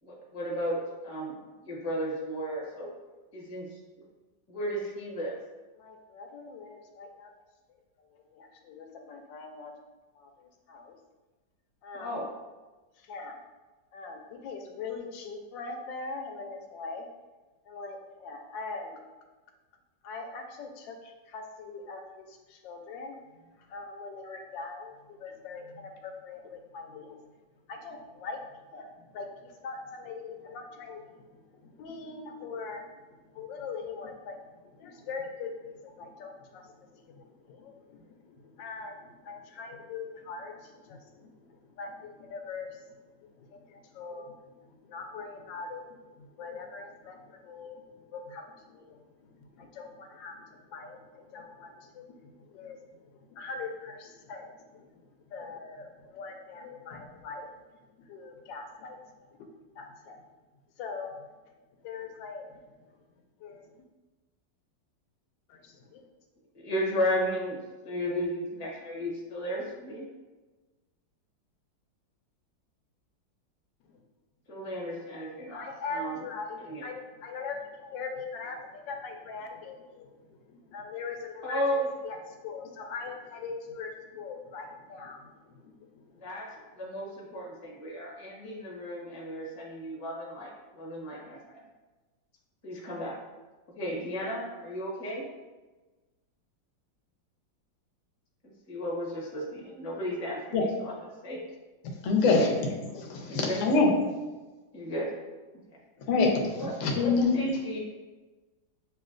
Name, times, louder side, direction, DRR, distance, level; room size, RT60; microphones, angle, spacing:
voice 1, 0.0-2.9 3.3-3.8 4.5-5.4 11.9-12.3 66.5-67.6 67.8-70.0 74.5-76.3 76.6-76.9 81.4-81.9 86.1-91.6 92.6-93.2 93.7-95.2 98.4-100.9 101.2-101.4 102.3-102.5 103.3-103.6 104.7-105.1 106.6-107.8, equal, 25° left, -3 dB, 0.7 m, -34 dB
voice 2, 5.8-7.3 8.1-9.7 10.2-10.3 10.7-11.0 11.8-12.2 13.1-13.4 13.9-17.1 17.7-19.0 20.0-22.2 22.5-23.2 23.7-27.2 27.7-28.4 28.7-28.9 29.1-31.0 31.8-32.8 33.3-34.3 34.8-36.7 37.1-38.0 38.6-41.3 41.8-42.7 43.5-44.3 44.9-47.8 48.1-49.0 49.5-50.4 50.7-52.0 52.5-52.8 53.3-54.9 55.3-57.5 58.1-59.0 59.8-60.2 60.8-61.2 61.8-62.4 63.4-63.6 65.5-66.0 75.5-78.6 78.9-80.1 80.7-82.2 82.4-85.2 85.8-85.9, left 4 dB, 80° left, 3 dB, 1.3 m, -41 dB
voice 3, 102.0-102.5 102.9-103.9 106.1-107.5, left 3 dB, 55° left, 0 dB, 0.9 m, -24 dB
6.9 x 2.6 x 2.5 m, 1.2 s
omnidirectional pair, 2.0 m